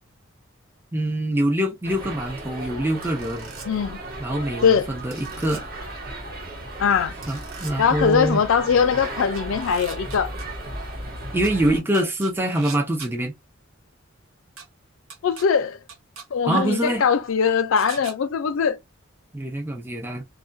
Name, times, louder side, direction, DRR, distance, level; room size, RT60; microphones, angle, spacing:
voice 1, 0.9-3.5 4.2-5.7 7.3-8.4 11.3-13.3 16.5-17.0 19.3-20.2, right 1 dB, 10° right, 0.4 m, -24 dB
sound 1, 1.8-11.8, right 1 dB, 45° right, 1.0 m, -35 dB
sound 2, 3.0-3.7 5.1-5.6 7.2-7.7 9.3-10.4 11.4-11.5 11.9-13.1 14.6-14.7 15.1-15.4 15.9-16.2 17.8-18.1, right 5 dB, 75° right, 0.7 m, -40 dB
voice 2, 3.7-4.0 4.6-4.9 6.8-7.1 7.8-10.3 15.2-15.8 16.3-18.8, left 6 dB, 75° left, 0.4 m, -21 dB
2.3 x 2.1 x 2.4 m
head